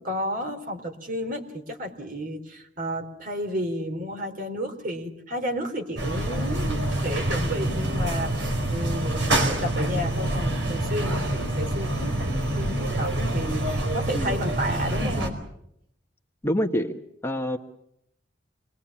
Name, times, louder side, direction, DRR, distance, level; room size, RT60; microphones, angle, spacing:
voice 1, 0.0-15.4, equal, 50° right, 5 dB, 3.7 m, -32 dB
sound 1, 6.0-15.3, right 1 dB, 90° right, 4.8 m, -26 dB
voice 2, 16.4-16.9 17.2-17.6, equal, 15° left, 5 dB, 1.2 m, -26 dB
27.0 x 21.5 x 7.3 m, 0.76 s
head